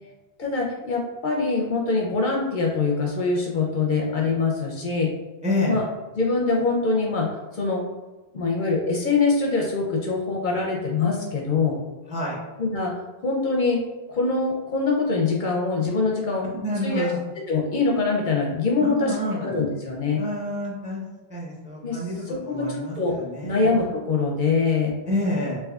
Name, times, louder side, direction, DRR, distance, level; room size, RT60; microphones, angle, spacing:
voice 1, 0.4-5.1 5.7-5.8 6.2-7.8 8.3-11.8 12.6-12.9 13.2-13.8 14.1-16.5 16.8-17.1 17.5-20.2 21.8-23.2 23.4-24.9, left 4 dB, 60° left, -2 dB, 0.6 m, -24 dB
voice 2, 5.4-5.8 12.1-12.4 16.6-17.2 18.8-19.5 20.2-21.0 21.3-22.1 22.4-23.6 25.1-25.6, left 1 dB, 10° right, -3 dB, 0.5 m, -28 dB
3.5 x 2.9 x 2.3 m, 1.2 s
omnidirectional pair, 1.1 m